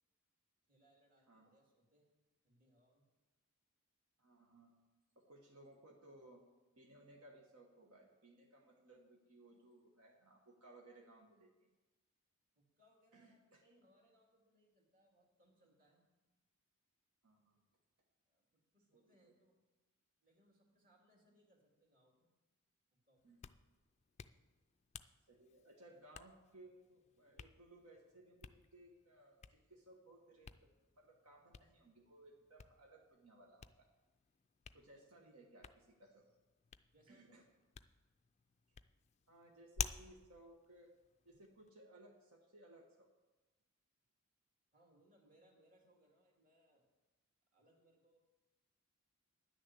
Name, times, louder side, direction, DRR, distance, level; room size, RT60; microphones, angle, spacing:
voice 1, 0.7-2.1 2.4-3.0 12.6-16.0 18.3-19.6 20.2-22.3 22.9-23.4 34.9-35.0 36.9-37.3 44.7-46.9 47.5-48.2, right 1 dB, 40° right, 0 dB, 2.5 m, -72 dB
voice 2, 4.2-4.7 5.1-6.4 6.8-11.5 13.1-13.6 17.2-17.6 18.9-19.3 23.2-23.4 25.3-33.9 34.7-36.3 37.1-37.4 39.3-40.9 41.2-43.1, right 1 dB, 80° right, 0 dB, 1.3 m, -62 dB
Hands, 23.2-41.7, left 8 dB, 30° left, 0.3 m, -53 dB
11.0 x 6.5 x 8.2 m, 1.1 s
head